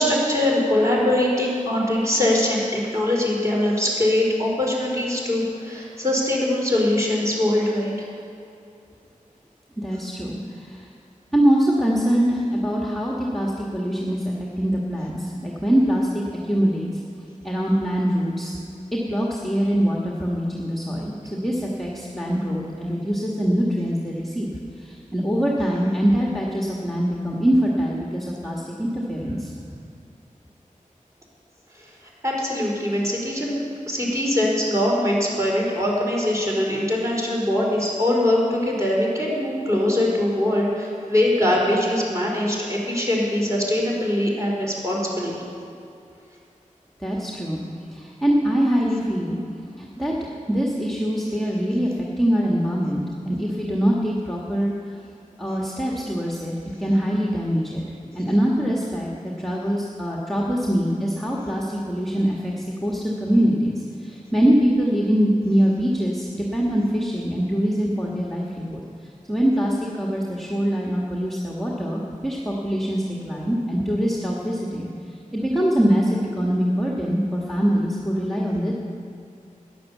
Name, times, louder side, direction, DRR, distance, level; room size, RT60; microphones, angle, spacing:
voice 1, 0.0-8.1 32.2-45.4, left 1 dB, 20° right, -4 dB, 4.2 m, -22 dB
voice 2, 9.8-10.9 11.3-16.9 17.4-18.6 18.9-29.5 47.0-47.6 47.9-49.4 49.8-50.1 50.5-54.7 55.4-56.5 56.8-57.8 58.1-68.8 69.3-74.9 75.3-78.7, equal, ahead, -3 dB, 1.4 m, -23 dB
13.0 x 10.5 x 7.2 m, 2.6 s
wide cardioid pair, 75°, 14 cm